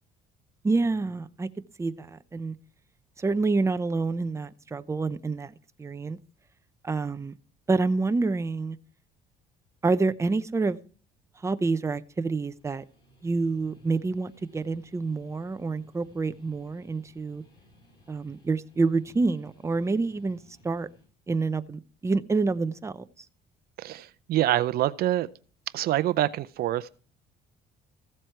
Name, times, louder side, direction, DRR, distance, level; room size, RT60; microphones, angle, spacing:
voice 1, 0.6-1.5 1.8-2.5 3.2-5.5 5.8-6.2 6.8-7.3 7.7-8.8 9.8-10.8 11.4-12.8 13.2-17.4 18.1-20.4 20.6-20.9 21.3-23.0, right 3 dB, 15° right, 0.7 m, -27 dB
Guitar, 12.4-21.1, equal, 30° left, 7.2 m, -60 dB
voice 2, 23.8-25.3 25.7-26.9, right 13 dB, 65° right, 0.6 m, -26 dB
15.0 x 7.6 x 4.5 m
cardioid pair, 110°, 17 cm